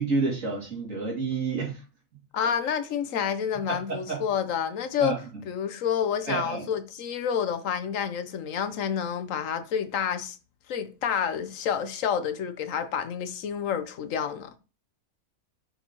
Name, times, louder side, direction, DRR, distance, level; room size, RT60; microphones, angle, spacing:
voice 1, 0.0-1.8 3.7-4.2 5.0-5.2 6.3-6.6, right 4 dB, 70° right, 2.8 m, -29 dB
voice 2, 2.3-5.1 5.5-10.4 10.7-14.5, left 8 dB, 75° left, 1.1 m, -29 dB
6.7 x 5.6 x 2.9 m
omnidirectional pair, 1.4 m